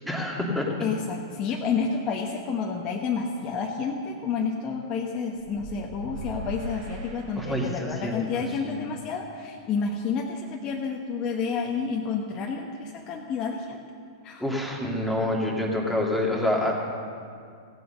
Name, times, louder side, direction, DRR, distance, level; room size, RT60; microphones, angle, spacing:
voice 1, 0.0-0.7 7.4-8.1 8.5-8.8 14.4-16.8, left 1 dB, ahead, -3 dB, 2.3 m, -27 dB
voice 2, 0.8-13.8 14.2-14.4, left 5 dB, 35° left, -1 dB, 1.1 m, -30 dB
sound 1, 5.4-8.0, right 1 dB, 55° right, 2.7 m, -39 dB
16.0 x 7.9 x 6.6 m, 2.3 s
hypercardioid pair, 110°, 2 cm